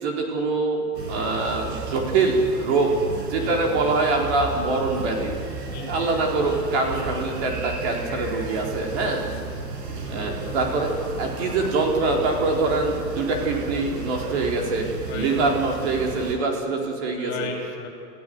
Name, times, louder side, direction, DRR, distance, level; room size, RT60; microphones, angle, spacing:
voice 1, 0.0-5.4 5.9-9.2 10.1-10.9 11.2-17.5, right 3 dB, 40° right, 0 dB, 4.4 m, -24 dB
sound 1, 0.9-16.3, right 4 dB, 85° right, 5.7 m, -33 dB
voice 2, 5.7-6.1 9.3-9.6 10.0-10.7 15.0-15.3 17.2-17.9, left 5 dB, 35° left, 2 dB, 6.3 m, -36 dB
28.0 x 16.0 x 8.0 m, 2.5 s
hypercardioid pair, 170°, 48 cm